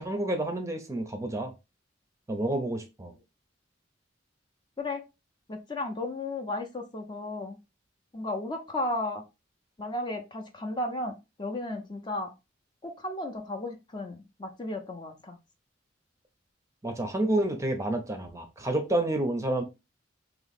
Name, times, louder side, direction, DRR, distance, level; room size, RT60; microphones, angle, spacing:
voice 1, 0.0-1.5 2.3-3.1 16.8-19.6, right 1 dB, 15° right, 5 dB, 0.6 m, -29 dB
voice 2, 5.5-7.6 8.1-9.2 9.8-12.3 12.8-15.4, left 2 dB, 25° left, 4 dB, 0.6 m, -34 dB
3.0 x 3.0 x 4.1 m, 0.26 s
head